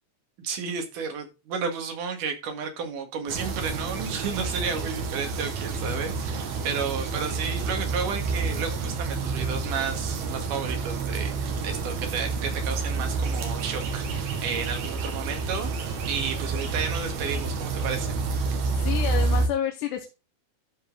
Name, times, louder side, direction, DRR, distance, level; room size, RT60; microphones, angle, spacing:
voice 1, 0.4-18.2, right 6 dB, 85° right, 3.3 m, -32 dB
sound 1, 3.3-19.5, right 4 dB, 65° right, 2.8 m, -29 dB
voice 2, 18.8-20.1, left 10 dB, 80° left, 2.5 m, -29 dB
12.5 x 5.2 x 3.8 m
omnidirectional pair, 3.6 m